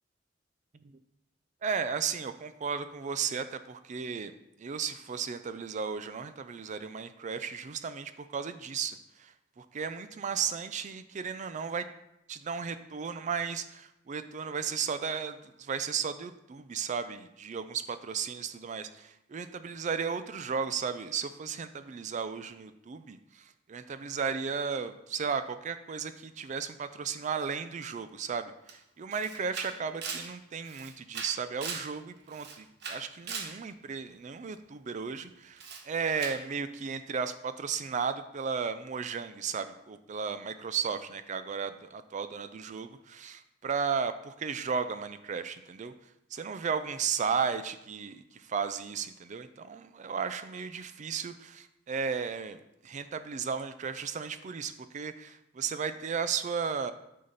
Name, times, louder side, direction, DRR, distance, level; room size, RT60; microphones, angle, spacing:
voice 1, 1.6-4.3 4.6-11.9 12.3-45.9 46.3-56.9, right 6 dB, 40° right, 11 dB, 0.4 m, -35 dB
Camera, 28.7-28.8 29.1-31.9 32.3-33.6 35.6-35.8 36.2-36.4, right 5 dB, 60° right, 1.1 m, -39 dB
9.6 x 5.8 x 4.0 m, 0.83 s
head